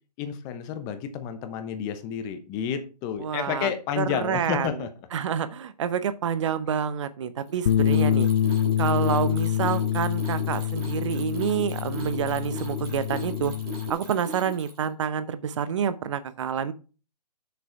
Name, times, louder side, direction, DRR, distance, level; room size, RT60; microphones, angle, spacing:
voice 1, 0.2-4.9, left 8 dB, 20° left, 9 dB, 0.9 m, -30 dB
voice 2, 3.2-3.7 4.0-4.7 5.1-8.3 8.8-13.5 13.9-16.7, right 8 dB, 45° right, 13 dB, 0.8 m, -28 dB
Mechanisms, 7.5-14.9, right 1 dB, 20° right, 3.8 m, -38 dB
Bass guitar, 7.7-13.9, left 10 dB, 45° left, 0.6 m, -26 dB
7.5 x 6.8 x 4.5 m, 0.34 s
hypercardioid pair, 145°, 21 cm